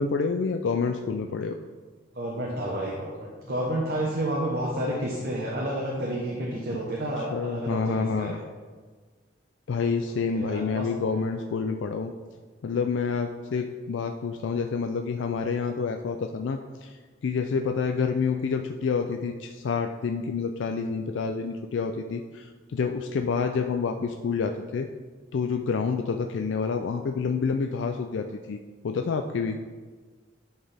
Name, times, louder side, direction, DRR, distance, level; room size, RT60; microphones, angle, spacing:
voice 1, 0.0-1.6 7.3-8.4 9.7-12.1 12.6-17.0 17.2-24.9 25.3-28.6 28.8-29.6, left 5 dB, 90° left, 5 dB, 0.4 m, -28 dB
voice 2, 2.1-8.4 10.1-11.2, right 1 dB, 55° right, -3 dB, 1.0 m, -30 dB
10.5 x 4.4 x 3.4 m, 1.4 s
head